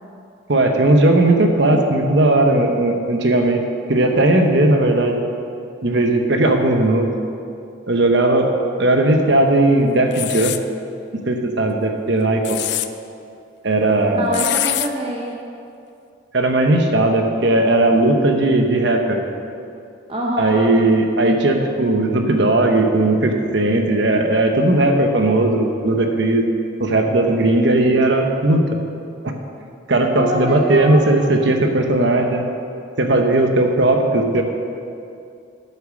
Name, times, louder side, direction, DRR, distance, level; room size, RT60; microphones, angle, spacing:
voice 1, 0.5-3.6 3.9-5.2 5.8-7.1 7.9-8.5 8.8-10.5 11.3-12.6 13.6-14.4 16.3-19.2 20.4-26.4 26.8-28.7 29.2-29.3 29.9-32.5 33.0-34.4, right 2 dB, 60° right, 4 dB, 1.0 m, -17 dB
sound 1, 10.1-10.6 12.2-12.9 14.3-14.9, left 14 dB, 55° left, 0.4 m, -23 dB
voice 2, 14.0-15.4 20.1-20.6 30.2-31.0, equal, 25° right, -2 dB, 0.8 m, -25 dB
9.3 x 7.6 x 6.3 m, 2.5 s
head